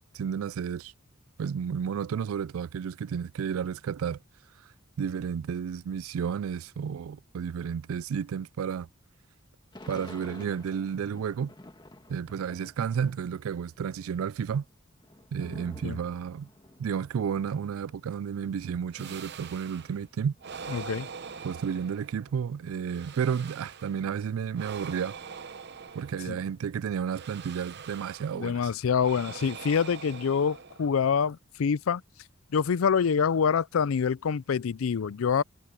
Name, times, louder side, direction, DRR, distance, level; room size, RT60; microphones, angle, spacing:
voice 1, 0.1-0.9 1.4-4.2 5.0-8.9 9.9-11.5 12.1-14.6 15.3-16.5 16.8-20.3 21.4-25.2 25.9-28.6, right 7 dB, 80° right, 0.3 m, -32 dB
Thunder / Rain, 9.7-13.4 13.7-20.7 21.3-21.4 21.6-24.8 25.2-26.9, left 1 dB, 20° left, 1.9 m, -52 dB
sound 1, 18.9-20.0 20.4-22.4 22.8-24.1 24.5-26.5 27.1-28.5 29.0-31.1, right 6 dB, 55° right, 0.7 m, -43 dB
voice 2, 20.7-21.1 26.3-26.4 28.3-32.0 32.5-35.4, left 6 dB, 75° left, 0.4 m, -26 dB
head